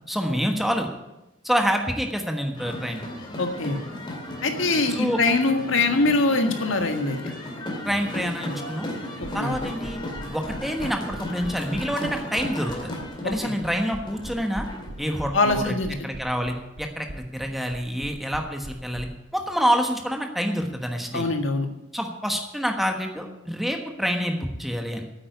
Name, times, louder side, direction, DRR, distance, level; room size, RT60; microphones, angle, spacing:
voice 1, 0.1-0.9 1.4-3.0 4.9-5.2 7.8-8.9 9.3-10.0 10.3-12.9 13.2-14.7 15.0-15.7 16.0-21.2 21.9-25.0, equal, ahead, 3 dB, 1.3 m, -27 dB
sound 1, 2.5-15.2, left 1 dB, 25° left, 2.2 m, -35 dB
voice 2, 3.4-3.8 4.4-7.2 9.2-9.5 13.2-13.5 15.3-15.9 21.1-21.7, left 3 dB, 75° left, 5 dB, 1.7 m, -23 dB
sound 2, 9.2-19.0, right 1 dB, 60° right, 1.6 m, -39 dB
9.0 x 8.7 x 9.5 m, 0.96 s
head